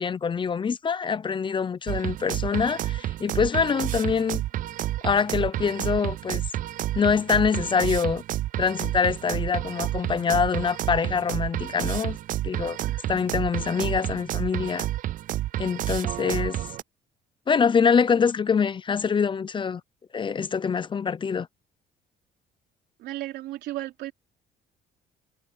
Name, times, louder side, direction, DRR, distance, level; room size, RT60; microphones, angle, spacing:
voice 1, 0.0-4.4 5.0-6.4 6.9-8.2 8.6-12.2 12.4-12.8 13.1-14.9 15.6-16.5 17.5-19.8 20.1-21.5, left 6 dB, 30° left, 0.7 m, -25 dB
sound 1, 1.9-16.8, right 14 dB, 50° right, 0.4 m, -30 dB
voice 2, 23.0-24.1, right 15 dB, 80° right, 4.0 m, -34 dB
cardioid pair, 110°, 17 cm